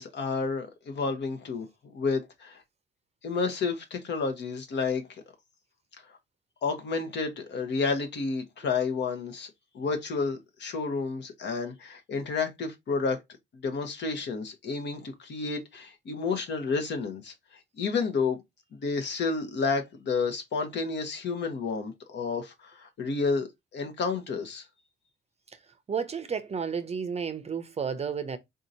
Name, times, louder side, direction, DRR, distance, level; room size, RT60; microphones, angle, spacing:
voice 1, 0.0-1.7 1.9-2.6 3.2-5.0 6.6-9.5 9.7-13.2 13.6-17.3 17.8-18.4 18.8-24.6, left 4 dB, 60° left, 1.0 m, -30 dB
voice 2, 25.9-28.4, right 6 dB, 30° right, 0.6 m, -32 dB
3.8 x 2.8 x 2.6 m
cardioid pair, 90°, 20 cm